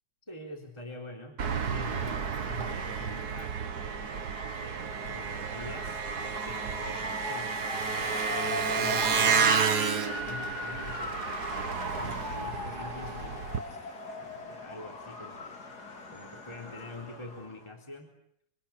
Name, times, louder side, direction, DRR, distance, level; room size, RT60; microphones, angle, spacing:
voice 1, 0.2-4.3 4.6-13.6 14.2-15.5 16.1-18.1, left 2 dB, 15° left, 2 dB, 3.8 m, -45 dB
Engine, 1.4-13.6, right 6 dB, 50° right, 1.9 m, -31 dB
Motor vehicle (road) / Siren, 5.0-17.7, left 3 dB, 50° left, 3.3 m, -40 dB
26.5 x 25.0 x 8.4 m, 0.72 s
omnidirectional pair, 2.3 m